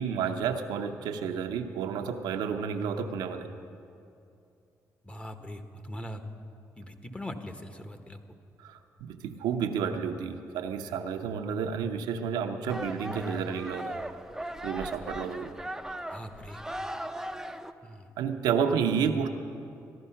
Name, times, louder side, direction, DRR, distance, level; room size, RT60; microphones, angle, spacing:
voice 1, 0.0-3.5 8.6-14.0 14.6-15.5 18.2-19.3, right 7 dB, 85° right, 5 dB, 0.7 m, -30 dB
voice 2, 5.0-6.2 6.8-8.2 16.1-16.6 17.8-18.1, equal, 15° left, 7 dB, 1.2 m, -41 dB
sound 1, 12.7-17.7, right 1 dB, 5° right, 0.6 m, -38 dB
15.0 x 11.0 x 5.7 m, 2.6 s
supercardioid pair, 60°, 7 cm